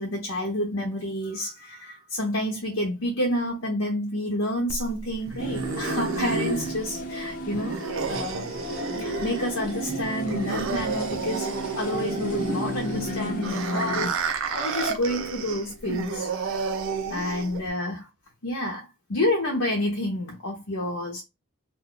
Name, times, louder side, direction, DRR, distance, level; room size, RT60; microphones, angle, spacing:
voice 1, 0.0-8.6 9.0-11.5 11.8-16.3 17.1-18.0 18.4-18.8 19.1-21.2, left 1 dB, 70° left, 0.8 m, -29 dB
sound 1, 4.7-17.7, right 5 dB, 60° right, 0.5 m, -31 dB
sound 2, 5.4-14.1, equal, 35° left, 0.7 m, -33 dB
2.6 x 2.3 x 3.7 m
head